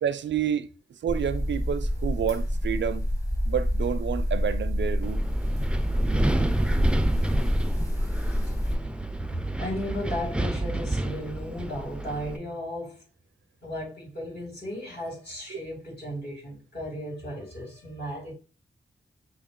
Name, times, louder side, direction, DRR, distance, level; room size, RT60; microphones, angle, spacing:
voice 1, 0.0-0.7 1.0-3.1 3.4-5.2, right 8 dB, 75° right, 0.4 m, -29 dB
sound 1, 1.1-8.8, equal, 15° left, 1.1 m, -27 dB
Wind, 5.0-12.4, right 1 dB, 5° right, 0.4 m, -29 dB
voice 2, 9.6-13.0 13.6-18.3, left 1 dB, 60° left, 2.7 m, -35 dB
5.7 x 2.4 x 3.7 m
cardioid pair, 60°, 19 cm